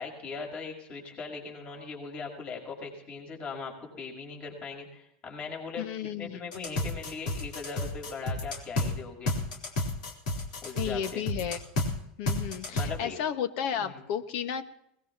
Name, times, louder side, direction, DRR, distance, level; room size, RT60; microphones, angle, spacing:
voice 1, 0.0-5.9 6.2-9.3 10.6-11.2 12.6-13.2 13.8-14.1, left 4 dB, 40° left, 0 dB, 5.7 m, -40 dB
voice 2, 5.8-6.4 10.8-11.6 12.2-14.6, left 8 dB, 65° left, 9 dB, 1.6 m, -33 dB
sound 1, 6.5-8.9 9.3-11.9 12.3-12.9, left 2 dB, 90° left, 3.9 m, -30 dB
21.0 x 20.0 x 3.0 m, 0.76 s
supercardioid pair, 120°, 4 cm